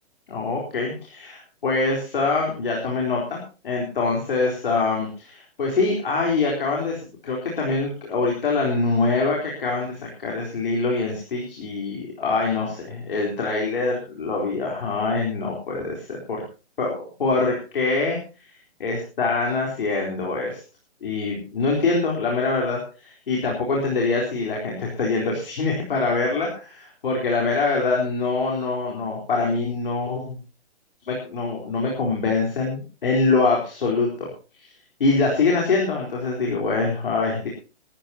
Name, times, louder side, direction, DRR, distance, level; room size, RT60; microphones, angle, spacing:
voice 1, 0.3-3.4 3.6-16.4 16.8-18.2 18.8-20.6 21.0-30.4 31.1-34.3 34.6-34.7 35.0-37.5, left 3 dB, 50° left, -1 dB, 4.1 m, -24 dB
20.5 x 13.5 x 2.9 m, 0.34 s
hypercardioid pair, 180°, 34 cm